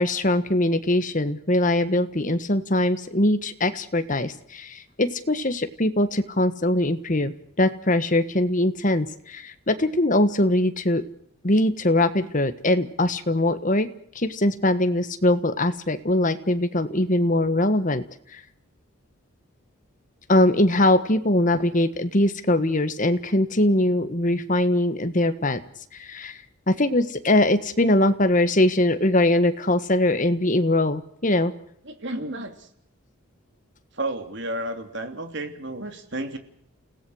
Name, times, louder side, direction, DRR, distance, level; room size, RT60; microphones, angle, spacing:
voice 1, 0.0-11.0 11.4-13.9 14.1-18.0 18.3-18.4 20.3-25.6 25.9-26.4 26.7-31.5, left 1 dB, 35° left, 10 dB, 1.5 m, -22 dB
voice 2, 31.8-32.7 33.9-36.4, right 1 dB, 55° right, 7 dB, 3.0 m, -32 dB
29.0 x 17.5 x 6.4 m, 0.68 s
head